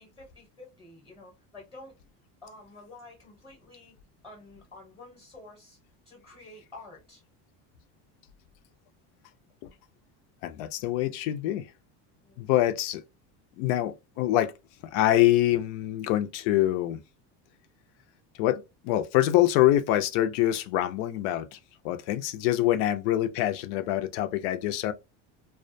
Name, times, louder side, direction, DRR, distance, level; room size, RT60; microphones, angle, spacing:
voice 1, 0.0-2.0 2.4-3.9 4.2-5.8 6.0-7.2 12.2-12.5 23.8-24.0, left 2 dB, 10° left, 0.8 m, -49 dB
voice 2, 10.4-11.7 12.4-13.0 13.6-14.5 14.8-17.0 18.4-21.6 21.8-24.9, left 14 dB, 70° left, 0.5 m, -25 dB
2.4 x 2.2 x 2.5 m
cardioid pair, 165°, 38 cm